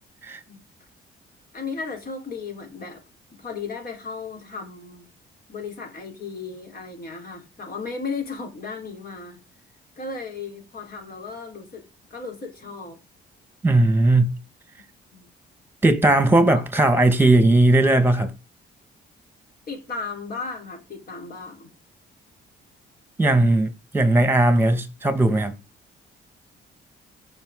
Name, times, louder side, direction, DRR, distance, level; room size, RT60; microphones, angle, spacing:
voice 1, 1.5-3.0 3.4-5.0 5.5-9.4 10.0-11.8 12.1-13.0 15.1-15.3 16.5-16.6 19.7-21.7, left 4 dB, 50° left, 4.7 m, -35 dB
voice 2, 13.6-14.4 15.8-18.3 23.2-25.5, right 2 dB, 10° right, 2.1 m, -18 dB
15.0 x 5.9 x 4.0 m
cardioid pair, 90°, 20 cm